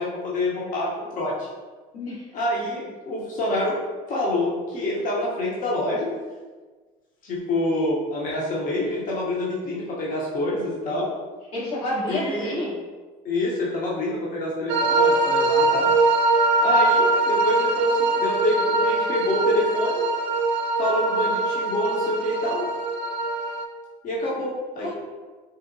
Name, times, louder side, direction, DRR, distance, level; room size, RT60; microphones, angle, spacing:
voice 1, 0.0-1.5 2.3-3.8 4.1-6.1 7.2-11.1 12.1-12.6 13.2-15.9 16.6-20.0 20.8-22.6 24.0-24.9, left 1 dB, 50° left, -5 dB, 0.8 m, -26 dB
voice 2, 1.9-2.3 11.5-12.8 24.8-24.9, left 1 dB, 85° left, -7 dB, 1.3 m, -29 dB
sound 1, 14.7-23.6, right 2 dB, 70° right, 0.4 m, -22 dB
3.8 x 2.1 x 2.6 m, 1.4 s
supercardioid pair, 80°, 18 cm